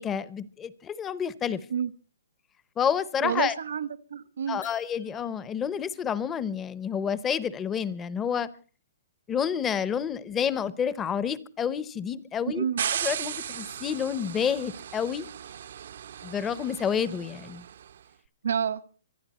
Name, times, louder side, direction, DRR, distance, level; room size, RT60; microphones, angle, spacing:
voice 1, 0.0-1.6 2.8-3.5 4.5-8.5 9.3-12.7 13.0-15.3 16.2-17.6, left 7 dB, 10° left, 0.8 m, -29 dB
voice 2, 3.2-4.6 12.5-12.8 18.4-18.8, right 7 dB, 75° right, 1.6 m, -29 dB
sound 1, 4.6-5.8, left 8 dB, 70° left, 3.4 m, -50 dB
sound 2, 12.8-17.9, right 9 dB, 55° right, 0.8 m, -36 dB
25.0 x 12.0 x 4.2 m
hypercardioid pair, 170°, 0 cm